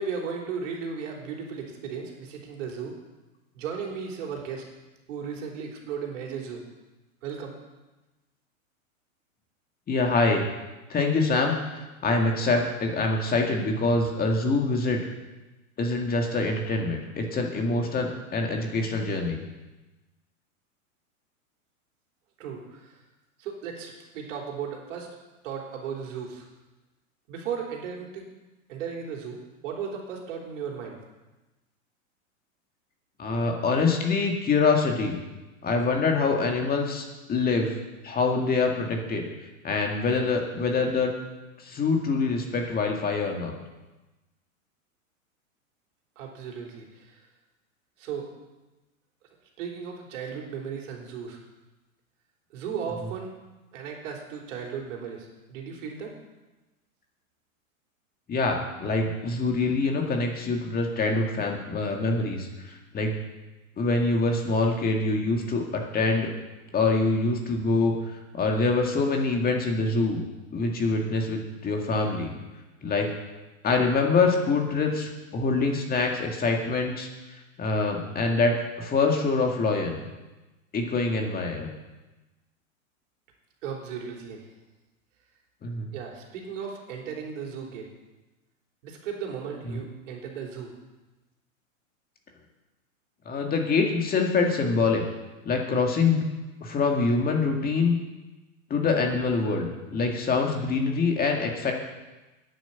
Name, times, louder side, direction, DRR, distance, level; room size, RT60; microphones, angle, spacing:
voice 1, 0.0-3.0 3.5-4.7 5.1-6.6 7.2-7.5 22.4-23.0 23.4-25.1 25.4-26.5 27.3-28.3 28.7-31.0 46.2-47.3 48.0-48.3 49.6-51.4 52.5-53.3 53.7-56.2 83.6-84.5 85.9-87.9 88.8-90.7, right 6 dB, 60° right, 0 dB, 3.6 m, -36 dB
voice 2, 9.9-10.5 10.9-15.0 15.8-19.4 33.2-35.2 35.6-37.7 38.0-39.3 39.6-41.1 41.6-43.5 58.3-63.1 63.8-66.3 66.7-68.0 68.3-70.2 70.5-72.3 72.8-73.1 73.6-77.1 77.6-80.0 80.7-81.7 85.6-85.9 93.3-95.0 95.5-96.2 96.6-98.0 98.7-101.7, left 3 dB, 20° left, 2 dB, 2.0 m, -25 dB
10.0 x 10.0 x 7.0 m, 1.1 s
hypercardioid pair, 115°, 42 cm